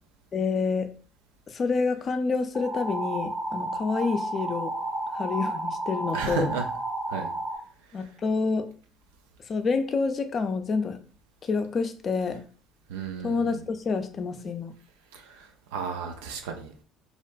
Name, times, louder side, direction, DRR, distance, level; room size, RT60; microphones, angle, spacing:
voice 1, 0.3-0.9 1.5-4.7 5.1-6.5 7.9-8.7 9.5-11.0 11.4-12.4 13.2-14.8, left 4 dB, 40° left, 8 dB, 0.4 m, -28 dB
sound 1, 2.5-7.6, right 2 dB, 30° right, 0.7 m, -32 dB
voice 2, 6.1-6.7 7.1-7.3 12.9-13.6 15.1-16.8, right 5 dB, 75° right, 3 dB, 0.4 m, -33 dB
2.7 x 2.1 x 2.5 m, 0.43 s
hypercardioid pair, 60°, 0 cm